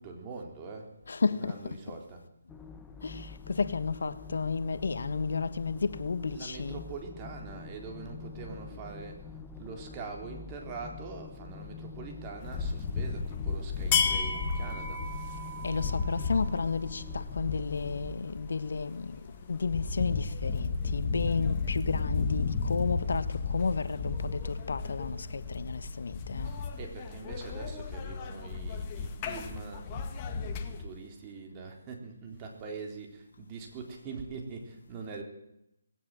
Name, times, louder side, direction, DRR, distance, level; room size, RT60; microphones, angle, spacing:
voice 1, 0.0-0.9 1.3-2.2 6.3-9.2 9.6-15.0 17.0-17.1 26.4-35.2, right 4 dB, 20° right, 3.9 m, -43 dB
voice 2, 1.1-1.8 3.0-6.8 15.6-19.2 19.5-26.5, left 4 dB, 70° left, 1.4 m, -32 dB
sound 1, 2.5-18.2, left 4 dB, 5° left, 1.2 m, -46 dB
sound 2, 12.4-30.8, left 5 dB, 25° left, 2.0 m, -33 dB
19.5 x 17.5 x 7.8 m
hypercardioid pair, 160°, 0 cm